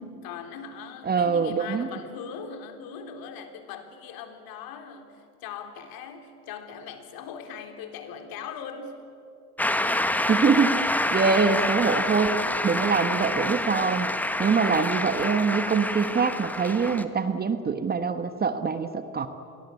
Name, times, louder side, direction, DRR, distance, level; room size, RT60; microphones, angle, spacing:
voice 1, 0.2-9.0, left 6 dB, 50° left, 6 dB, 3.8 m, -40 dB
voice 2, 1.0-1.9 10.3-10.8 11.1-12.4 12.6-14.1 14.4-19.3, right 5 dB, 20° right, 10 dB, 1.4 m, -24 dB
Shout / Cheering / Applause, 9.6-17.0, left 1 dB, 5° left, 1.4 m, -27 dB
28.0 x 22.5 x 8.5 m, 2.5 s
hypercardioid pair, 95°, 45 cm